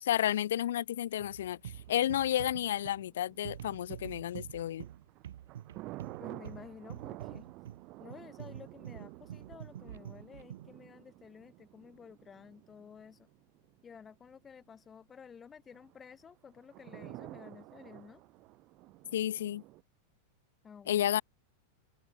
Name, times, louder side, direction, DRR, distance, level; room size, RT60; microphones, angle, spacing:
voice 1, 0.0-4.9 19.1-19.6 20.9-21.2, left 11 dB, 85° left, 0.3 m, -31 dB
sound 1, 1.2-10.8, right 11 dB, 90° right, 0.8 m, -47 dB
sound 2, 1.7-4.3 4.8-14.3 15.7-19.8, right 21 dB, 40° right, 1.1 m, -51 dB
voice 2, 6.2-7.5 8.0-13.3 13.8-18.2 20.6-21.1, left 6 dB, 20° left, 7.0 m, -52 dB
open air
supercardioid pair, 140°, 0 cm